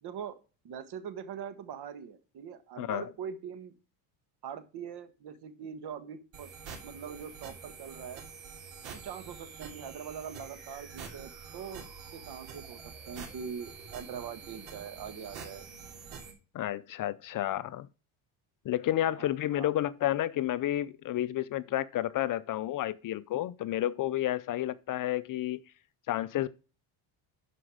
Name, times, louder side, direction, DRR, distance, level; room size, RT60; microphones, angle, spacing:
voice 1, 0.0-0.4 0.6-3.7 4.4-6.5 6.8-8.2 8.9-11.9 12.1-12.8 13.1-15.6 19.2-19.7, right 7 dB, 55° right, 1.6 m, -42 dB
voice 2, 2.8-3.1 16.5-17.9 18.6-25.6 26.1-26.5, left 13 dB, 45° left, 0.6 m, -31 dB
sound 1, 6.3-16.3, right 6 dB, 70° right, 3.1 m, -46 dB
11.5 x 5.1 x 4.9 m
supercardioid pair, 100°, 47 cm